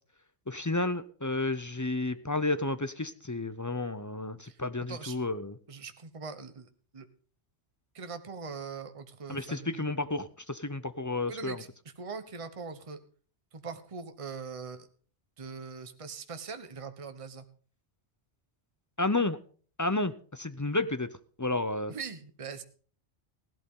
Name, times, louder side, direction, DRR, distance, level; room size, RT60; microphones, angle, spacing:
voice 1, 0.5-5.5 9.3-11.6 19.0-19.4 19.8-21.1 21.4-21.9, left 2 dB, 20° left, 12 dB, 0.6 m, -31 dB
voice 2, 4.9-5.2 5.7-7.1 7.9-9.9 11.3-13.0 13.5-14.9 15.4-17.4 21.9-22.6, right 5 dB, 30° right, 9 dB, 1.1 m, -42 dB
16.5 x 12.0 x 3.8 m, 0.42 s
omnidirectional pair, 1.2 m